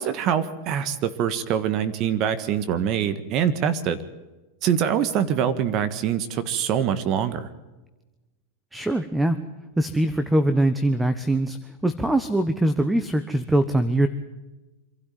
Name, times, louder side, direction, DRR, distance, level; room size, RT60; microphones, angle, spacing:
voice 1, 0.0-4.0 4.6-7.5, right 9 dB, 45° right, 13 dB, 1.6 m, -24 dB
voice 2, 8.7-9.4 9.8-14.1, right 1 dB, 5° right, 11 dB, 1.2 m, -22 dB
25.5 x 12.0 x 9.3 m, 1.1 s
hypercardioid pair, 120°, 0 cm